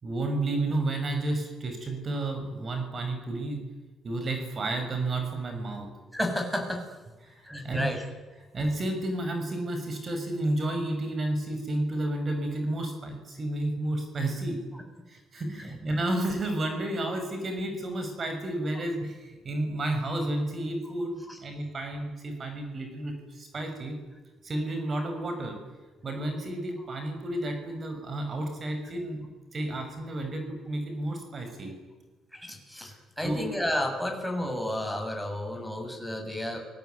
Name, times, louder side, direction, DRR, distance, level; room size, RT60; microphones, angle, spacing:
voice 1, 0.0-3.6 4.0-5.9 7.2-7.9 8.5-14.6 15.1-24.0 24.4-25.6 26.0-31.7 32.9-33.0 33.2-33.5, right 1 dB, 45° right, 5 dB, 6.3 m, -31 dB
voice 2, 6.1-6.8 7.5-8.0 21.2-21.4 32.3-36.6, left 1 dB, ahead, 5 dB, 7.3 m, -32 dB
28.5 x 19.5 x 9.5 m, 1.2 s
cardioid pair, 90°, 0 cm